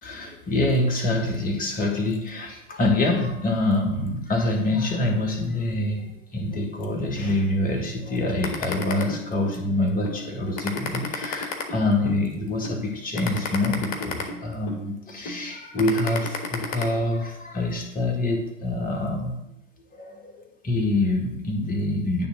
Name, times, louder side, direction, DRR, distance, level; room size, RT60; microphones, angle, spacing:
voice 1, 0.0-19.4 20.0-20.3 20.6-22.3, left 2 dB, 20° left, 1 dB, 1.8 m, -25 dB
sound 1, 8.4-9.6 10.0-10.2 10.6-12.2 12.6-12.8 13.2-14.8 15.3-15.4 15.8-16.8, left 5 dB, 40° left, 1.4 m, -31 dB
9.5 x 3.5 x 6.2 m, 0.85 s
figure-of-eight pair, 95°, 38 cm